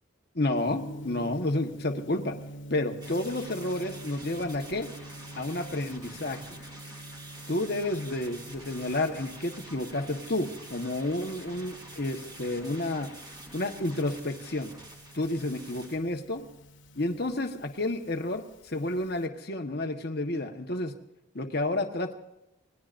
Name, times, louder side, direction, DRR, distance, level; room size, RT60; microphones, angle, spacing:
voice 1, 0.3-2.3 2.7-4.9 5.4-6.6 7.5-13.1 13.5-14.7 15.1-16.4 16.9-20.9 21.3-22.1, left 2 dB, 50° left, 4 dB, 1.4 m, -30 dB
Gong, 0.6-19.2, equal, 70° left, 1.6 m, -46 dB
sound 1, 3.0-16.0, right 2 dB, 20° right, 3.1 m, -47 dB
27.5 x 19.5 x 2.6 m, 0.91 s
head